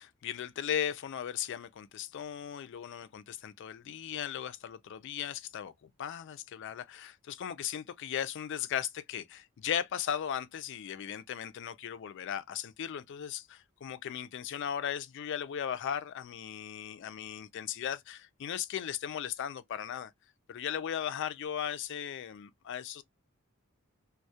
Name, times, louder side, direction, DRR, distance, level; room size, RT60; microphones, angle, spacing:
voice 1, 0.0-5.7 6.0-20.1 20.5-23.0, left 9 dB, 60° left, 0.3 m, -37 dB
2.2 x 2.1 x 2.6 m
head